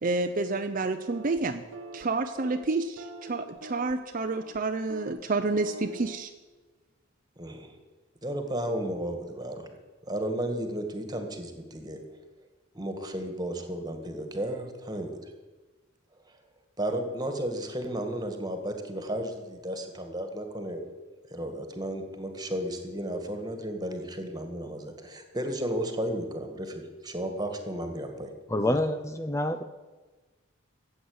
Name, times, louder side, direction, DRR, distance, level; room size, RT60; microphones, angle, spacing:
voice 1, 0.0-1.6 1.9-6.3, right 3 dB, 45° right, 7 dB, 0.6 m, -29 dB
sound 1, 1.1-1.4 1.7-2.0 2.4-2.7 3.0-3.9 4.3-4.6 4.9-5.2 5.5-6.2, right 1 dB, 90° right, 1.3 m, -43 dB
voice 2, 7.4-7.7 8.2-9.7 10.1-12.0 12.7-15.3 16.8-20.8 21.3-28.3 28.7-28.8, right 1 dB, 20° right, 6 dB, 1.9 m, -33 dB
voice 3, 28.5-29.6, left 1 dB, 15° left, 9 dB, 0.5 m, -27 dB
14.5 x 8.0 x 9.7 m, 1.3 s
head